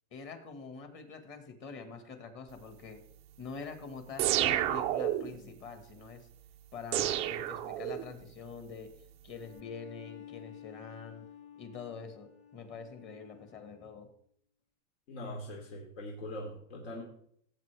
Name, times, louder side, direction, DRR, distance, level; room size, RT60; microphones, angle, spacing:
voice 1, 0.1-3.1 3.4-6.3 6.7-11.3 11.6-14.1, left 5 dB, 30° left, 7 dB, 1.7 m, -45 dB
sound 1, 4.2-5.4 6.9-8.2, right 13 dB, 20° right, 0.3 m, -30 dB
Bowed string instrument, 9.3-14.0, left 10 dB, 55° left, 2.6 m, -52 dB
voice 2, 15.1-17.0, left 1 dB, 75° left, -2 dB, 3.1 m, -42 dB
16.5 x 8.3 x 3.4 m, 0.66 s
supercardioid pair, 145°, 37 cm